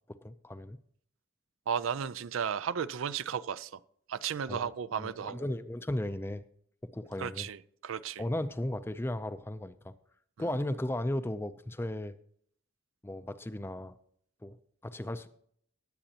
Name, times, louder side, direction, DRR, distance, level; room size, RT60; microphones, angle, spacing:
voice 1, 0.1-0.8 4.5-4.7 5.0-6.4 6.8-7.5 8.2-9.9 10.4-12.1 13.0-14.0 14.4-14.6 14.8-15.3, left 1 dB, 10° left, 0.4 m, -35 dB
voice 2, 1.7-3.8 4.1-5.5 7.2-8.2, right 7 dB, 85° right, 0.4 m, -34 dB
19.0 x 7.8 x 2.9 m
head